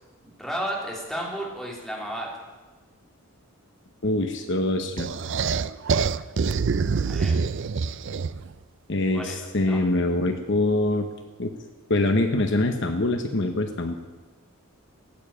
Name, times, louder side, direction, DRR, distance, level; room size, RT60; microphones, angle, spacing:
voice 1, 0.2-2.3 6.8-7.4 9.1-9.4 9.7-9.8, right 1 dB, ahead, -3 dB, 3.1 m, -33 dB
voice 2, 4.0-5.1 8.9-11.1 11.4-11.5 11.9-13.9, left 2 dB, 55° left, 6 dB, 1.0 m, -24 dB
sound 1, 5.0-8.5, right 5 dB, 55° right, 0.4 m, -25 dB
15.5 x 9.0 x 8.6 m, 1.3 s
head